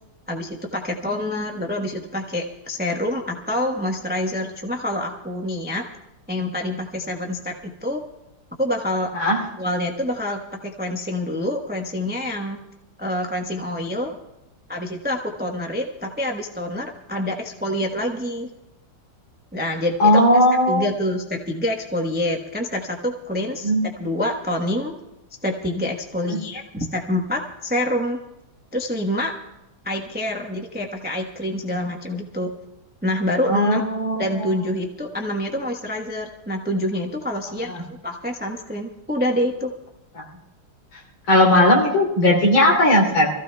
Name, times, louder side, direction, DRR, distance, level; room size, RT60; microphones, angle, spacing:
voice 1, 0.3-5.8 6.3-8.0 8.6-9.1 9.6-12.6 13.0-14.2 14.7-18.5 19.5-20.2 20.7-23.7 24.0-24.9 25.4-28.2 28.7-29.3 29.8-32.5 33.0-33.8 34.2-39.7, left 1 dB, 10° right, 2 dB, 0.5 m, -26 dB
voice 2, 20.0-20.9 23.6-23.9 26.3-26.4 33.5-34.5 40.2-40.3 41.3-43.3, left 1 dB, 70° left, -1 dB, 3.7 m, -17 dB
25.5 x 15.0 x 2.3 m, 0.97 s
omnidirectional pair, 2.3 m